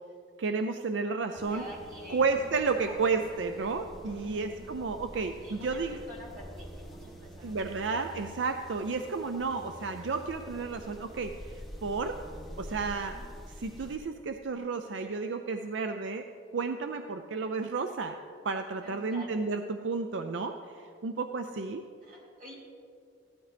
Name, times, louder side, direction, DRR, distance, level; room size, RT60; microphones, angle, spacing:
voice 1, 0.4-1.6 2.1-6.0 7.4-12.2 12.6-13.2 13.6-16.2 16.5-18.2 18.4-21.8, right 4 dB, 80° right, 6 dB, 0.5 m, -32 dB
sound 1, 1.3-14.0, equal, ahead, 1.1 m, -47 dB
voice 2, 1.5-2.5 2.8-3.0 4.1-4.7 5.4-7.5 12.7-13.3 18.8-19.5 22.0-22.5, equal, 50° right, -5 dB, 3.5 m, -48 dB
15.5 x 12.5 x 3.4 m, 2.2 s
head